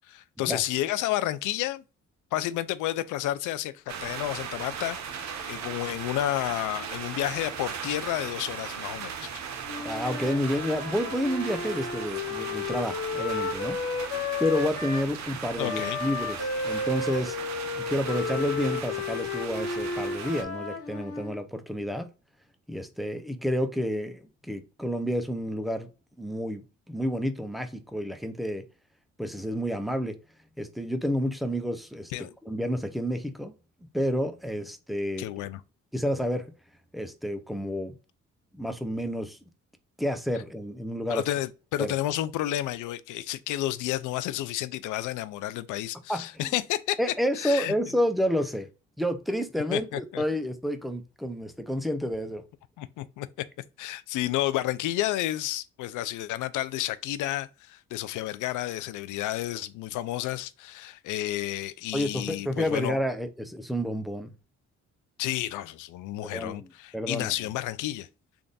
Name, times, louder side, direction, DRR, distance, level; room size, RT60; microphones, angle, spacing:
voice 1, 0.1-1.8 2.3-9.1 15.6-16.0 32.1-32.3 35.2-35.6 41.1-47.0 47.3-47.7 49.7-50.2 52.8-53.3 53.8-63.0 65.2-68.1, left 14 dB, 80° left, 0.4 m, -31 dB
sound 1, 3.9-20.4, right 7 dB, 65° right, 0.7 m, -38 dB
Wind instrument woodwind instrument, 9.6-15.1 15.6-21.4, left 4 dB, 50° left, 0.8 m, -33 dB
voice 2, 9.8-13.8 14.4-17.4 17.8-22.1 22.7-25.9 26.2-28.6 29.2-30.2 30.6-33.5 33.9-35.3 35.9-36.4 36.9-37.9 38.5-39.4 40.0-41.2 41.8-41.9 46.1-46.5 47.0-48.7 49.0-52.4 61.9-64.3 66.2-67.3, equal, ahead, 0.5 m, -30 dB
3.4 x 2.5 x 3.9 m
cardioid pair, 90°, 30 cm